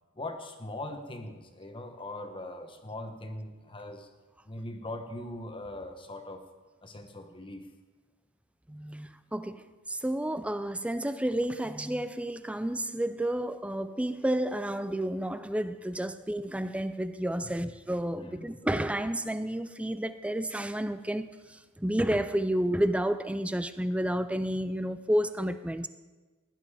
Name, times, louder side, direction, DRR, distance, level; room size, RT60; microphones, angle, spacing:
voice 1, 0.1-4.1 4.4-6.5 6.8-7.7 17.4-17.6 18.1-18.6, left 1 dB, 25° left, 1.2 m, -41 dB
voice 2, 8.7-9.6 9.9-25.9, right 1 dB, 5° right, 0.5 m, -31 dB
17.5 x 10.5 x 4.9 m
head